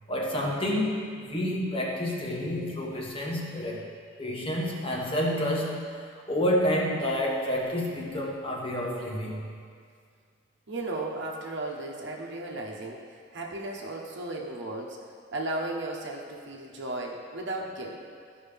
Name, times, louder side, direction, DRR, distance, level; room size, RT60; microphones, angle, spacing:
voice 1, 0.1-3.9 4.2-9.5, equal, 25° left, -3 dB, 1.2 m, -29 dB
voice 2, 10.7-13.0 13.3-15.0 15.3-18.0, right 2 dB, 60° right, -1 dB, 1.1 m, -35 dB
13.0 x 5.3 x 3.5 m, 2.1 s
head